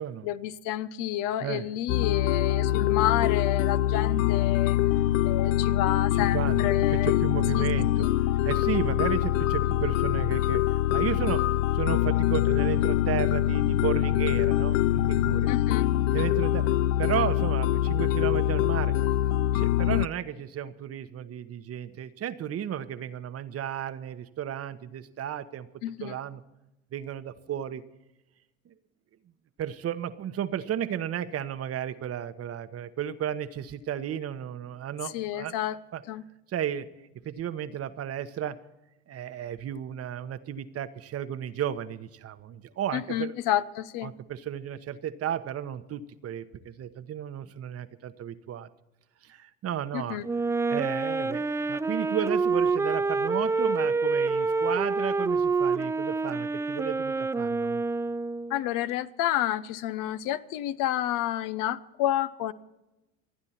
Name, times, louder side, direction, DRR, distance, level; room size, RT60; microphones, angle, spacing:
voice 1, 0.2-4.8 5.2-7.2 7.5-7.7 7.9-8.1 15.5-15.9 25.8-26.2 35.1-35.8 36.1-36.2 42.9-44.1 49.9-50.3 58.5-62.5, left 13 dB, 55° left, 14 dB, 0.9 m, -30 dB
sound 1, 1.9-20.1, left 13 dB, 80° left, 0.5 m, -24 dB
voice 2, 6.2-8.1 8.4-15.5 16.1-16.7 17.0-19.0 19.5-25.7 26.0-26.4 26.9-27.8 28.7-28.8 29.6-35.5 35.9-36.0 36.5-36.9 37.2-38.6 39.1-43.4 44.0-48.7 49.2-50.2 50.7-57.8, right 10 dB, 40° right, 12 dB, 1.1 m, -33 dB
Wind instrument woodwind instrument, 50.2-58.6, right 4 dB, 10° right, 0.4 m, -27 dB
27.5 x 9.7 x 4.3 m, 0.97 s
hypercardioid pair, 80°, 37 cm